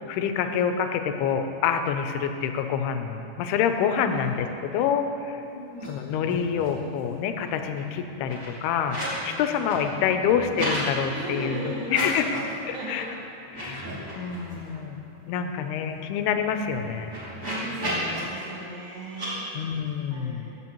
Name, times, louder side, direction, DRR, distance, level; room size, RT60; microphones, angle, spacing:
voice 1, 0.1-5.4 5.9-9.0 9.2-12.2 12.7-13.1 13.5-13.8 14.2-15.0 15.3-17.1 19.5-20.5, left 7 dB, 90° left, 7 dB, 2.6 m, -27 dB
voice 2, 5.5-5.9 9.1-9.5 9.8-10.1 11.1-11.9 12.7-13.1 14.0-14.3 16.7-16.9 17.4-19.5 20.1-20.6, right 1 dB, 80° right, -6 dB, 1.2 m, -37 dB
sound 1, 5.7-5.9 6.1-6.8 7.1-9.2 9.5-10.8 11.8-12.5 12.9-13.1 13.4-14.8 15.2-15.3 15.5-18.2 19.1-19.3, equal, 25° right, 2.5 m, -35 dB
14.5 x 9.3 x 3.0 m, 2.7 s
omnidirectional pair, 4.4 m